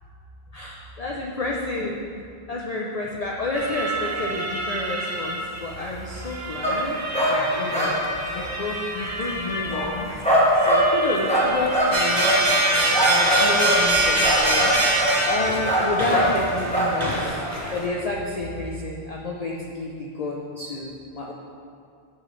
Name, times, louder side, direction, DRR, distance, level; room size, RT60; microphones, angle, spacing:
voice 1, 0.5-2.0 2.5-7.0 7.3-8.0 8.3-10.1 10.6-12.3 12.7-17.4 17.7-21.3, left 2 dB, 45° left, -2 dB, 0.5 m, -30 dB
sound 1, 3.5-17.9, right 1 dB, 25° right, 0.4 m, -33 dB
sound 2, 6.6-6.8 7.1-7.4 7.7-8.1 8.4-8.6 9.3-9.4 9.7-10.9 11.3-11.9 12.2-12.4 12.9-13.8 14.2-15.2 15.7-16.3 16.7-16.9, right 1 dB, 5° left, 1.2 m, -21 dB
sound 3, 11.9-17.8, right 1 dB, 40° right, 1.6 m, -23 dB
7.9 x 6.3 x 3.1 m, 2.3 s
omnidirectional pair, 1.1 m